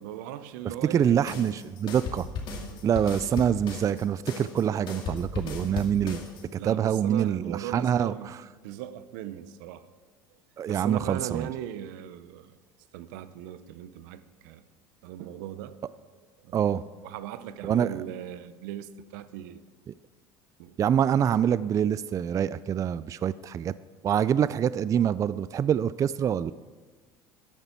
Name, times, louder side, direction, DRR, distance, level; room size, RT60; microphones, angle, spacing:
voice 1, 0.0-1.5 6.5-8.3 8.6-9.9 10.6-12.5 12.9-14.6 15.0-15.8 16.4-16.7 17.0-19.6 20.6-20.8, right 11 dB, 80° right, 0.7 m, -38 dB
voice 2, 0.9-2.3 2.8-6.2 6.5-8.4 10.6-11.5 16.5-16.8 17.6-18.0 19.9-20.0 20.8-23.7 24.0-26.5, right 9 dB, 35° right, 0.3 m, -25 dB
sound 1, 1.0-6.4, left 4 dB, 50° left, 2.4 m, -36 dB
13.0 x 10.0 x 4.5 m
supercardioid pair, 95°, 10 cm